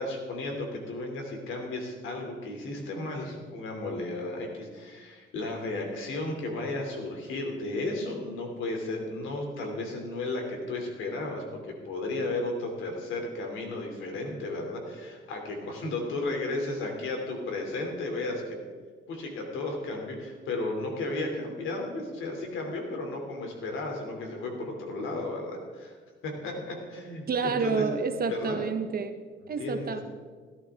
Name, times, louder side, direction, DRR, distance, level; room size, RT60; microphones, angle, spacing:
voice 1, 0.0-18.6 19.1-26.0 26.2-27.9 28.3-28.6 29.6-30.0, left 2 dB, 85° left, 2 dB, 3.1 m, -34 dB
voice 2, 27.3-29.1 29.5-30.0, right 4 dB, 50° right, 8 dB, 1.2 m, -29 dB
17.0 x 11.0 x 3.7 m, 1.5 s
cardioid pair, 90°, 20 cm